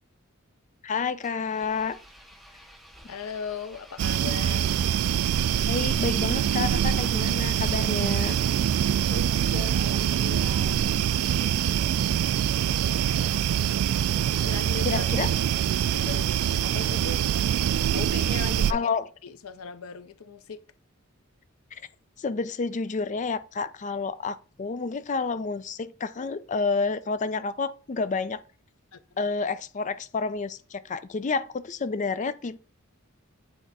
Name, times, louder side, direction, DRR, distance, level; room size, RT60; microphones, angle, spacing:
voice 1, 0.8-2.0 5.7-8.4 14.8-15.3 18.7-19.1 21.7-21.8 22.2-28.4 29.2-32.6, left 4 dB, 35° left, 0.4 m, -29 dB
Engine, 1.2-8.9, equal, ahead, 0.8 m, -51 dB
voice 2, 3.1-4.8 9.1-10.8 11.2-11.6 12.1-12.2 13.1-13.3 14.4-15.3 15.9-17.3 17.9-18.9 19.2-20.6 28.9-29.0, left 5 dB, 80° left, 0.6 m, -38 dB
sound 1, 4.0-18.7, right 9 dB, 85° right, 0.3 m, -24 dB
8.5 x 3.4 x 4.1 m
head